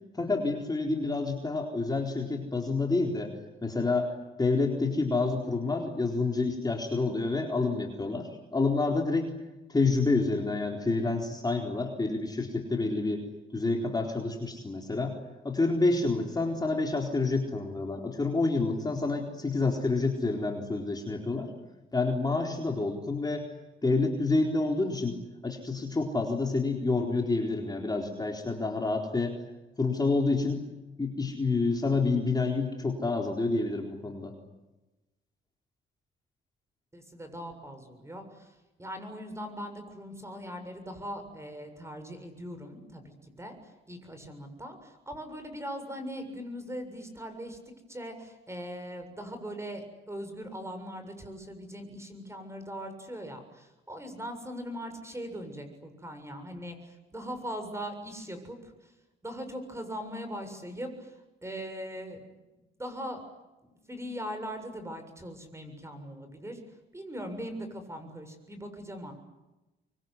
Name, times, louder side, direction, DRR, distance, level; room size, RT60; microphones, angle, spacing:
voice 1, 0.1-3.3 3.6-9.3 9.7-13.2 13.5-15.2 15.4-21.5 21.9-23.5 23.8-29.4 29.8-30.6 31.0-34.3, left 3 dB, 20° left, 2 dB, 4.1 m, -28 dB
voice 2, 36.9-38.5 38.8-47.6 47.9-58.9 59.2-62.2 62.8-63.2 63.9-66.6 66.9-69.1, equal, 15° right, 7 dB, 7.2 m, -40 dB
25.0 x 24.0 x 9.8 m, 1.0 s
cardioid pair, 90°, 20 cm